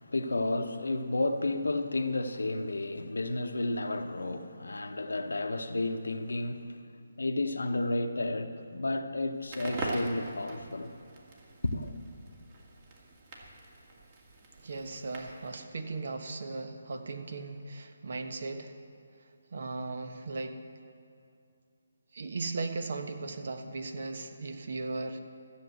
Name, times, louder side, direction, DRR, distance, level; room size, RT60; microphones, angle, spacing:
voice 1, 0.0-6.9 7.2-11.0 11.6-11.9, left 2 dB, 85° left, 1.0 m, -32 dB
Crackle, 9.4-15.5, right 2 dB, 35° right, 2.1 m, -42 dB
voice 2, 14.6-18.7 19.5-20.6 22.1-25.2, right 3 dB, 60° right, 1.2 m, -37 dB
14.5 x 7.5 x 8.0 m
figure-of-eight pair, 155°, 0 cm